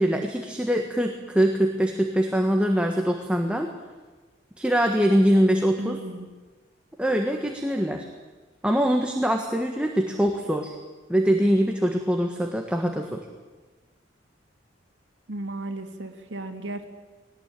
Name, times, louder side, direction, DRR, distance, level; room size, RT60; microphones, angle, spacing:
voice 1, 0.0-3.7 4.6-6.0 7.0-8.0 8.6-10.7 11.1-13.2, equal, 5° right, 3 dB, 1.5 m, -23 dB
voice 2, 5.8-6.3 15.3-16.8, right 2 dB, 65° right, 5 dB, 2.6 m, -34 dB
20.5 x 18.5 x 9.1 m, 1.3 s
head